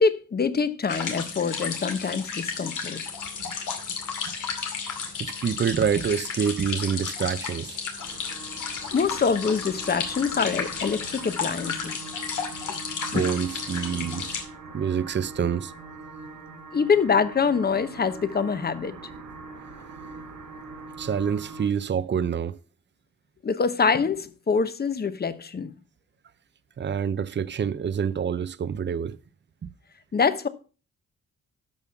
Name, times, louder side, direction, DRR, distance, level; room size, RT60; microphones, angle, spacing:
voice 1, 0.0-3.0 8.9-12.0 13.1-13.3 16.7-18.9 23.4-25.7 30.1-30.5, left 5 dB, 30° left, 1.0 m, -25 dB
sound 1, 0.9-14.4, left 6 dB, 85° left, 2.4 m, -33 dB
voice 2, 5.2-7.8 13.1-14.4 14.7-15.7 21.0-22.5 26.8-29.2, right 7 dB, 40° right, 0.7 m, -27 dB
sound 2, 8.0-21.7, right 3 dB, 90° right, 3.9 m, -42 dB
13.0 x 5.7 x 5.7 m
cardioid pair, 105°, 30 cm